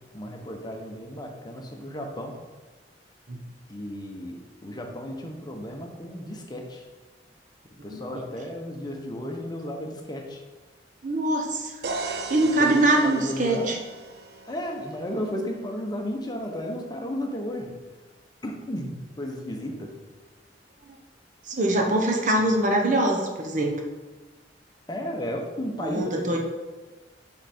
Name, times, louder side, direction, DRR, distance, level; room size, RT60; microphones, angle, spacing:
voice 1, 0.1-2.3 3.7-6.8 7.8-10.4 12.4-13.8 14.5-17.7 18.4-19.9 24.9-26.4, left 1 dB, 25° left, 1 dB, 1.0 m, -34 dB
voice 2, 7.9-8.2 11.0-11.8 12.3-13.8 21.5-23.7 25.8-26.4, right 1 dB, 45° right, 1 dB, 1.1 m, -23 dB
sound 1, 11.8-15.7, right 3 dB, 65° right, 0.7 m, -37 dB
6.2 x 5.9 x 4.4 m, 1.3 s
head